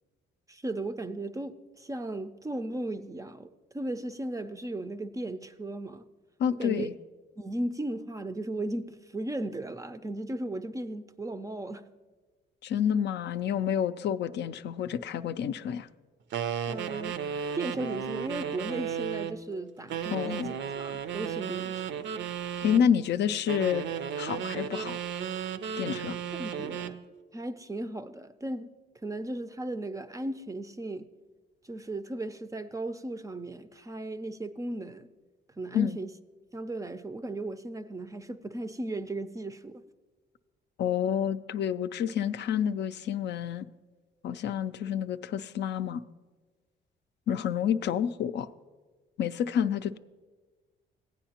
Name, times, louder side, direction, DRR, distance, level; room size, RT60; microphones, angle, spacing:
voice 1, 0.5-3.5 3.7-6.1 6.6-6.9 7.4-11.9 16.7-17.2 17.5-20.5 20.8-22.0 26.3-27.0 27.3-28.7 29.0-31.1 31.6-35.1 35.6-36.1 36.5-39.8, right 2 dB, 15° right, 0.4 m, -36 dB
voice 2, 6.4-6.9 12.6-15.9 20.1-20.5 22.6-23.8 24.2-25.0 25.8-26.2 35.7-36.0 40.8-43.7 44.2-46.0 47.3-48.5 49.2-50.0, left 8 dB, 60° left, 0.4 m, -29 dB
sound 1, 16.3-19.4 19.9-22.9 23.5-27.0, right 8 dB, 70° right, 0.5 m, -34 dB
15.5 x 9.0 x 2.9 m
cardioid pair, 90°, 20 cm